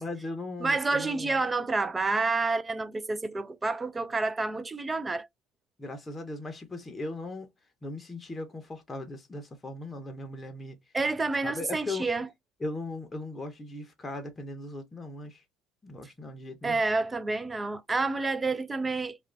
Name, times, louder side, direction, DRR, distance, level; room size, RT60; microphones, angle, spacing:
voice 1, 0.0-1.4 5.8-7.5 7.8-10.8 11.4-12.1 12.6-15.4 15.8-16.8, left 2 dB, 20° left, 0.7 m, -38 dB
voice 2, 0.6-5.3 10.9-12.3 16.6-19.2, right 3 dB, 15° right, 0.3 m, -29 dB
2.4 x 2.2 x 3.2 m
supercardioid pair, 110°, 0 cm